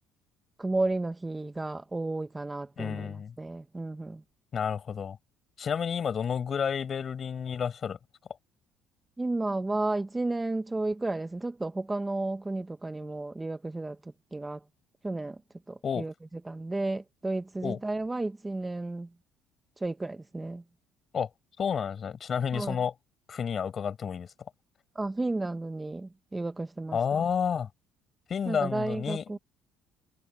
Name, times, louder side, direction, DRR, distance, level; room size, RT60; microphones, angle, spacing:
voice 1, 0.6-4.2 9.2-14.0 14.3-14.6 15.0-15.4 15.7-16.1 16.5-19.1 19.8-20.6 22.5-22.8 24.9-27.0 28.5-29.4, right 2 dB, 15° right, 0.8 m, -32 dB
voice 2, 2.8-3.4 4.5-5.2 5.6-8.0 15.8-16.1 17.6-17.8 21.1-21.3 21.6-22.9 23.3-24.3 26.9-27.7 28.3-29.4, left 7 dB, 40° left, 5.2 m, -30 dB
cardioid pair, 125°, 0 cm